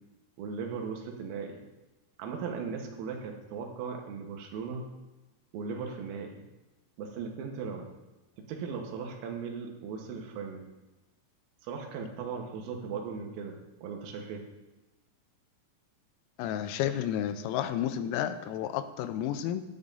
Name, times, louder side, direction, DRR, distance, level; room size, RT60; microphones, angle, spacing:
voice 1, 0.4-1.6 2.2-4.8 5.5-6.4 7.0-7.9 8.5-10.6 11.6-14.4, right 5 dB, 85° right, 2 dB, 4.0 m, -38 dB
voice 2, 16.4-19.6, left 10 dB, 90° left, 10 dB, 3.3 m, -31 dB
16.5 x 11.5 x 2.7 m, 1.1 s
omnidirectional pair, 5.9 m